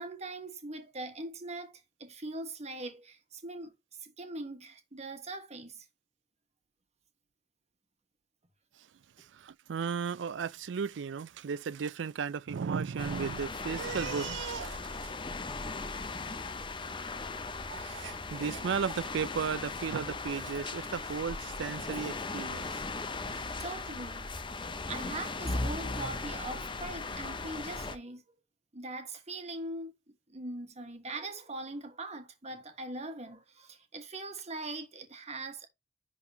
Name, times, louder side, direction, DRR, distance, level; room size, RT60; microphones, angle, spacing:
voice 1, 0.0-5.8 23.6-24.3 24.9-28.2 28.7-35.7, right 2 dB, 40° right, 1.6 m, -41 dB
voice 2, 9.3-15.1 17.7-22.8 23.3-23.5, right 6 dB, 80° right, 0.4 m, -35 dB
sound 1, 13.0-28.0, left 3 dB, 25° left, 0.7 m, -38 dB
11.0 x 4.0 x 2.9 m
head